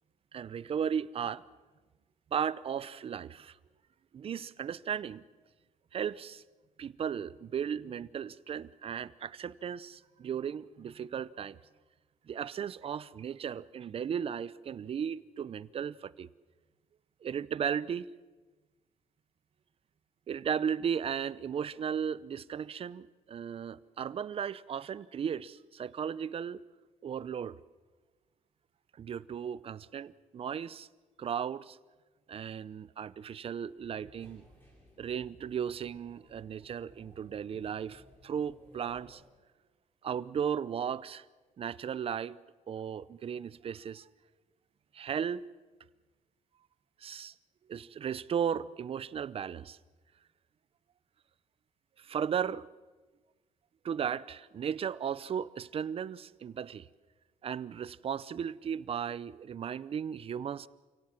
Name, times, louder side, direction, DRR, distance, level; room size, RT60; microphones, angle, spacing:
voice 1, 0.3-1.4 2.3-3.6 4.1-5.2 5.9-6.4 6.8-11.6 12.3-16.3 17.2-18.1 20.3-26.6 27.0-27.6 29.0-30.9 31.2-31.8 32.3-34.4 35.0-39.2 40.0-41.3 41.6-42.4 42.7-44.1 44.9-45.4 47.0-47.3 47.7-49.8 52.0-52.7 53.8-56.9 57.4-60.7, right 8 dB, 45° right, 19 dB, 0.7 m, -35 dB
sound 1, 33.8-39.3, equal, 15° left, 7.6 m, -59 dB
28.5 x 17.5 x 7.3 m, 1.3 s
cardioid pair, 120°, 14 cm